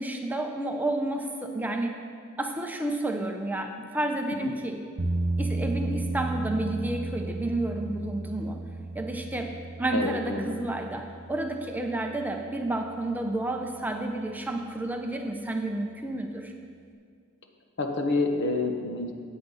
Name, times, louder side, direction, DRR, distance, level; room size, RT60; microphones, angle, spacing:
voice 1, 0.0-1.9 2.4-4.8 5.4-8.6 8.9-9.5 9.8-16.5, right 1 dB, 10° right, 3 dB, 0.7 m, -30 dB
sound 1, 5.0-13.1, right 2 dB, 50° right, 1.3 m, -34 dB
voice 2, 9.9-10.6 17.8-19.1, left 2 dB, 55° left, 4 dB, 1.1 m, -28 dB
14.0 x 9.1 x 4.1 m, 2.2 s
head